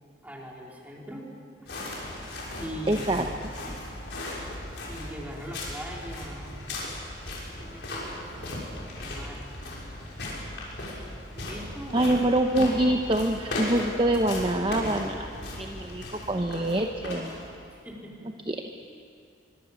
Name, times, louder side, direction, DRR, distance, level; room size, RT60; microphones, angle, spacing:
voice 1, 0.2-1.3 2.6-3.3 4.9-6.5 7.6-8.4 9.0-9.5 11.3-12.3 17.7-18.3, equal, 10° right, -2 dB, 3.6 m, -41 dB
sound 1, 1.7-17.7, left 1 dB, 70° left, 6.4 m, -37 dB
voice 2, 2.9-3.2 11.9-17.3 18.5-18.6, right 1 dB, 30° right, 4 dB, 0.9 m, -25 dB
24.0 x 23.5 x 7.1 m, 2.5 s
head